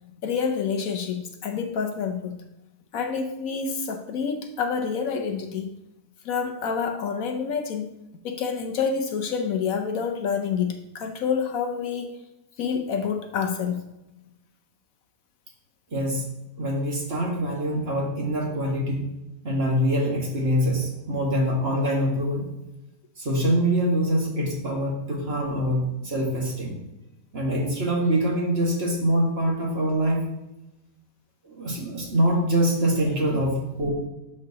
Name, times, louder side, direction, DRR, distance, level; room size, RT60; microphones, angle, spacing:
voice 1, 0.2-2.4 2.9-5.7 6.2-7.9 8.2-12.2 12.6-13.8, left 6 dB, 70° left, 5 dB, 1.1 m, -28 dB
voice 2, 15.9-16.2 16.6-19.0 19.4-22.4 23.2-26.7 27.3-30.2 31.4-33.9, equal, 40° right, -2 dB, 1.8 m, -24 dB
11.5 x 4.6 x 2.8 m, 0.92 s
omnidirectional pair, 1.6 m